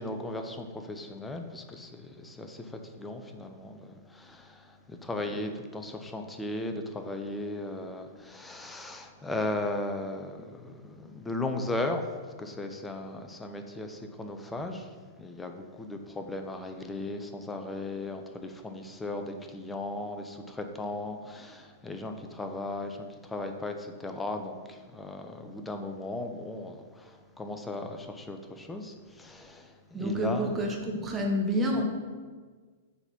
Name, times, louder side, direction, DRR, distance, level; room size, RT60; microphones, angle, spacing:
voice 1, 0.0-12.1 12.4-30.5 31.8-31.9, left 2 dB, 10° left, 5 dB, 0.7 m, -37 dB
voice 2, 29.9-31.8, equal, 15° right, 0 dB, 1.2 m, -28 dB
7.1 x 4.1 x 5.3 m, 1.5 s
figure-of-eight pair, 105°, 0 cm